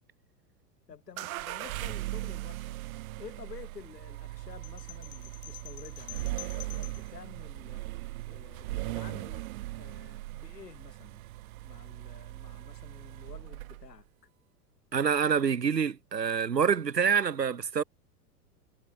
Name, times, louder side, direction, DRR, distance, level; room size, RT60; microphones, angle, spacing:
voice 1, 0.9-2.8 3.2-7.9 8.3-11.3 11.6-14.1, left 7 dB, 80° left, 5.0 m, -50 dB
sound 1, 1.2-14.0, right 18 dB, 60° right, 1.5 m, -39 dB
sound 2, 4.6-7.1, left 17 dB, 40° left, 3.7 m, -47 dB
voice 2, 14.9-17.8, right 7 dB, 85° right, 2.1 m, -26 dB
hypercardioid pair, 95°, 48 cm